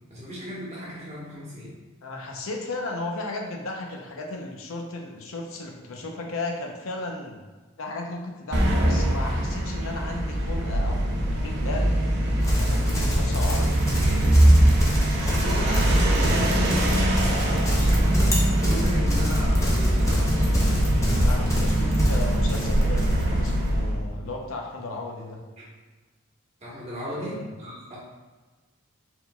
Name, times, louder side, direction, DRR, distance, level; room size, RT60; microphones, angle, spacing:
voice 1, 0.1-1.7 9.8-9.9 14.0-14.2 15.3-20.3 25.6-25.7 26.6-28.0, equal, 30° right, -6 dB, 1.2 m, -36 dB
voice 2, 2.0-7.4 7.8-12.0 12.5-13.7 21.2-25.4 27.1-27.5, left 2 dB, 75° left, 2 dB, 0.6 m, -35 dB
sound 1, 8.5-24.0, right 1 dB, 55° right, 0.7 m, -22 dB
Livestock farm animals working animals, 12.4-23.6, equal, 15° left, 0.6 m, -29 dB
4.4 x 3.8 x 2.2 m, 1.3 s
head